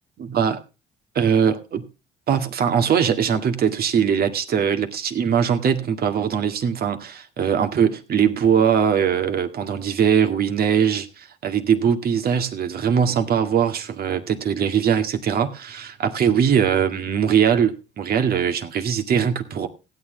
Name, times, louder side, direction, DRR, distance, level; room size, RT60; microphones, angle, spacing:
voice 1, 0.2-0.6 1.2-1.8 2.3-19.7, right 7 dB, 60° right, 2.0 m, -21 dB
16.0 x 9.6 x 3.8 m
supercardioid pair, 70°, 18 cm